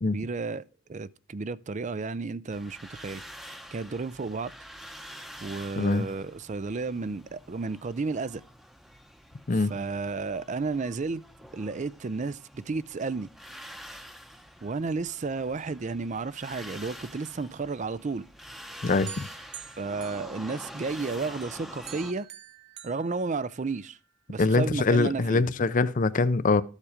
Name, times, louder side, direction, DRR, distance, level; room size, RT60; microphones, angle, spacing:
voice 1, 0.1-0.6 0.9-4.5 5.4-8.4 9.7-11.2 11.5-13.3 14.6-18.3 19.8-22.3 22.8-24.0 24.3-25.4, right 4 dB, 35° right, 0.4 m, -32 dB
sound 1, 2.5-22.1, equal, ahead, 0.8 m, -47 dB
voice 2, 5.8-6.1 9.5-9.7 18.8-19.2 24.4-26.6, left 3 dB, 40° left, 0.5 m, -23 dB
sound 2, 19.1-21.0 21.4-23.9, right 9 dB, 55° right, 1.3 m, -47 dB
13.5 x 7.3 x 4.9 m
head